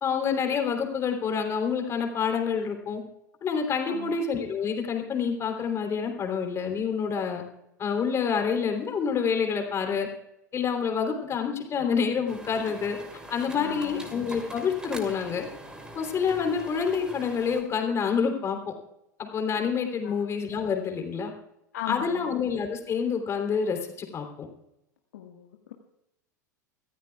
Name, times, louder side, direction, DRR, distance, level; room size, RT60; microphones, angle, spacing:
voice 1, 0.0-3.0 3.4-7.4 7.8-10.1 10.5-13.0 13.3-15.5 15.9-18.6 19.2-21.3 21.9-24.5, left 6 dB, 30° left, 4 dB, 3.4 m, -27 dB
sound 1, 12.3-17.6, right 1 dB, 10° right, 3.0 m, -43 dB
voice 2, 13.5-14.1 20.0-20.2 21.7-22.3 25.1-25.7, left 10 dB, 65° left, 2 dB, 1.7 m, -38 dB
25.0 x 15.0 x 2.4 m, 0.84 s
figure-of-eight pair, 85°, 10 cm